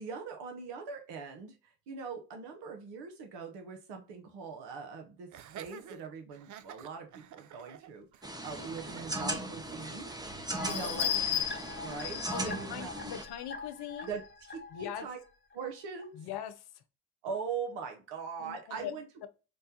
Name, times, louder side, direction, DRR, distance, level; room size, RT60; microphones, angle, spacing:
voice 1, 0.0-10.1 10.7-11.1 11.8-12.9 14.0-14.2 14.5-15.2 15.5-16.2 17.2-19.3, right 5 dB, 70° right, 0.9 m, -41 dB
Laughter, 5.3-10.3, right 10 dB, 45° right, 0.4 m, -50 dB
sound 1, 8.2-13.2, right 1 dB, 10° right, 0.7 m, -38 dB
voice 2, 10.5-11.4 12.3-14.2 14.7-15.1 16.1-16.8 18.4-18.9, left 10 dB, 60° left, 0.7 m, -41 dB
sound 2, 10.6-15.0 15.5-15.6 16.0-16.1, left 9 dB, 25° left, 1.0 m, -36 dB
5.2 x 2.2 x 2.8 m
hypercardioid pair, 50°, 43 cm